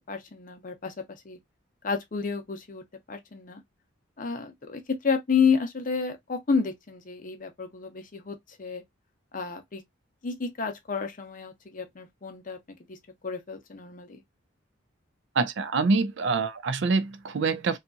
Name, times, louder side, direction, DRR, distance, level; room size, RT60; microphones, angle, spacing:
voice 1, 0.1-1.4 1.8-3.6 4.2-8.8 9.3-9.8 10.2-13.0 13.2-14.2, left 5 dB, 40° left, 0.6 m, -30 dB
voice 2, 15.4-17.8, right 4 dB, 60° right, 0.4 m, -25 dB
2.8 x 2.4 x 2.4 m
head